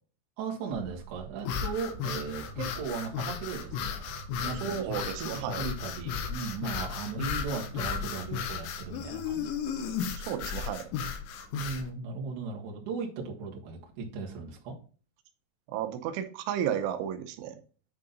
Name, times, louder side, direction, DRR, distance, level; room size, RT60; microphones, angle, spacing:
voice 1, 0.4-9.6 11.5-14.8, right 5 dB, 55° right, -1 dB, 2.4 m, -37 dB
sound 1, 0.7-11.6, right 6 dB, 40° right, 3.3 m, -47 dB
sound 2, 1.4-11.9, left 8 dB, 80° left, 3.2 m, -35 dB
voice 2, 4.6-5.6 10.2-10.8 15.7-17.6, right 9 dB, 85° right, 7 dB, 3.3 m, -33 dB
9.6 x 3.7 x 3.9 m, 0.38 s
omnidirectional pair, 5.4 m